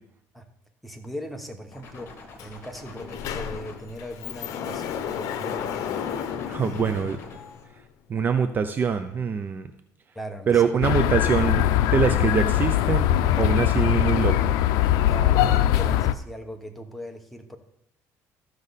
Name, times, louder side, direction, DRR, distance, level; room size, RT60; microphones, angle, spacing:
voice 1, 0.8-6.0 10.1-10.8 11.1-11.2 15.1-17.6, equal, ahead, 3 dB, 1.2 m, -39 dB
sound 1, 1.7-4.9 5.3-7.6, left 3 dB, 40° left, 2.2 m, -47 dB
Sliding door, 2.4-2.5 2.8-7.8, left 8 dB, 70° left, 0.8 m, -33 dB
voice 2, 6.5-7.2 8.1-9.7 10.5-11.6 11.9-13.1 13.4-14.5, right 6 dB, 30° right, 9 dB, 0.5 m, -24 dB
sound 2, 10.8-16.1, left 12 dB, 85° left, 0.5 m, -21 dB
14.0 x 6.4 x 4.1 m, 0.77 s
cardioid pair, 125°, 6 cm